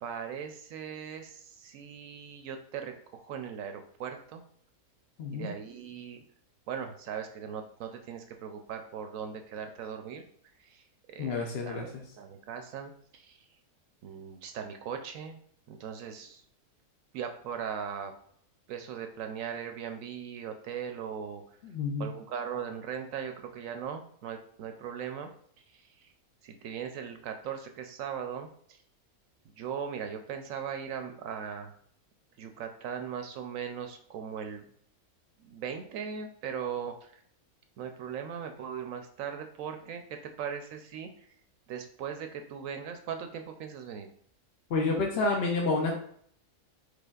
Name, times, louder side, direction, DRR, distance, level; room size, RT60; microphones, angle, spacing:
voice 1, 0.0-4.4 5.3-6.2 6.7-10.2 10.6-10.8 11.1-13.4 14.0-15.4 15.7-16.4 17.1-18.1 18.7-21.4 22.0-25.3 25.7-26.1 26.4-28.8 29.6-31.7 32.4-34.7 35.4-37.2 37.8-40.0 40.4-41.3 41.7-44.1, right 7 dB, 70° right, 6 dB, 0.9 m, -39 dB
voice 2, 5.2-5.5 11.2-12.0 21.6-22.1 44.7-45.9, left 3 dB, 60° left, 0 dB, 0.7 m, -29 dB
5.0 x 4.1 x 2.3 m, 0.62 s
omnidirectional pair, 1.5 m